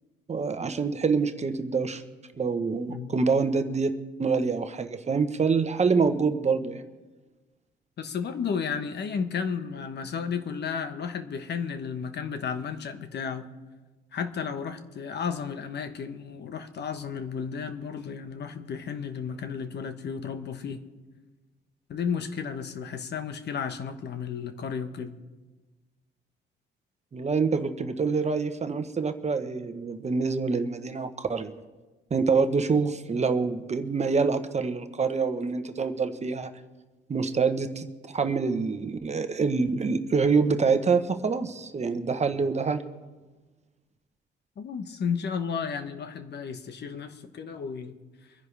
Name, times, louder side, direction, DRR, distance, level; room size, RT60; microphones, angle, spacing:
voice 1, 0.3-2.0 2.4-3.9 4.2-6.8 27.1-31.5 32.1-36.5 37.1-42.8, right 4 dB, 35° right, 8 dB, 1.1 m, -26 dB
voice 2, 8.0-13.4 14.1-20.8 21.9-25.1 44.6-48.0, left 6 dB, 60° left, 8 dB, 1.2 m, -33 dB
24.5 x 10.5 x 3.4 m, 1.2 s
cardioid pair, 90°, 20 cm